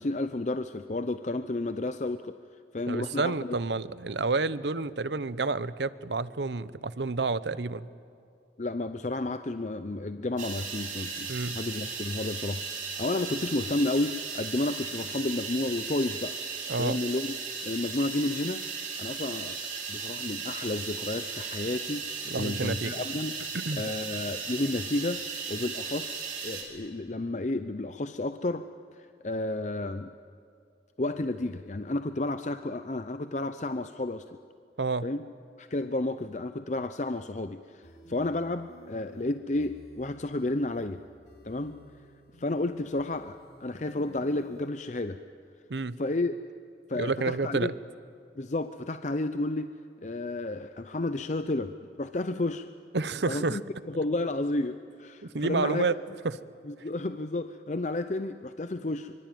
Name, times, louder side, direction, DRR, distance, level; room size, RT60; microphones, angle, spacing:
voice 1, 0.0-2.4 2.7-3.6 8.6-16.4 16.8-17.4 17.6-18.6 19.0-19.6 19.9-22.1 22.3-23.3 23.8-30.1 31.0-34.4 35.0-35.2 35.6-41.0 41.4-41.8 42.4-45.2 46.0-46.3 46.9-47.7 48.4-49.7 50.0-52.7 53.3-55.9 56.7-59.1, left 2 dB, 40° left, 10 dB, 0.6 m, -31 dB
voice 2, 2.9-7.9 11.3-11.6 16.7-17.0 22.3-22.9 23.5-24.0 34.8-35.1 45.7-46.0 47.0-47.7 52.9-53.6 55.2-55.9 56.2-56.4, right 3 dB, 80° right, 16 dB, 0.8 m, -29 dB
sound 1, 10.4-26.6, right 5 dB, 45° right, 4.6 m, -36 dB
sound 2, 37.8-44.7, left 1 dB, 70° left, 3.8 m, -53 dB
24.5 x 24.5 x 9.3 m, 2.4 s
head